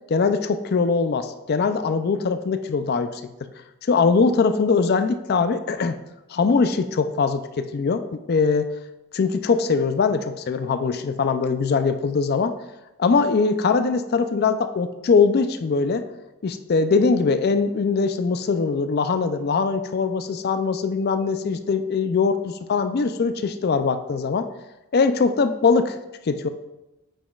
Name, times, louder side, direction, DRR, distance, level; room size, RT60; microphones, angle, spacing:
voice 1, 0.1-3.2 3.9-6.0 6.3-8.7 9.1-12.5 13.0-16.0 16.4-24.5 24.9-26.0 26.3-26.5, left 4 dB, 45° left, 10 dB, 0.4 m, -21 dB
8.8 x 5.2 x 2.3 m, 0.99 s
head